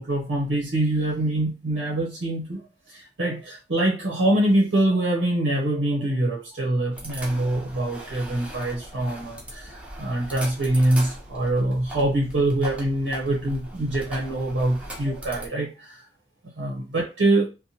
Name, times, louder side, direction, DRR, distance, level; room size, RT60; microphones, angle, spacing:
voice 1, 0.0-2.6 2.9-16.1 16.6-17.5, right 1 dB, 80° right, -2 dB, 0.7 m, -24 dB
sound 1, 6.9-15.5, right 1 dB, 5° right, 0.6 m, -39 dB
2.7 x 2.1 x 2.8 m, 0.31 s
head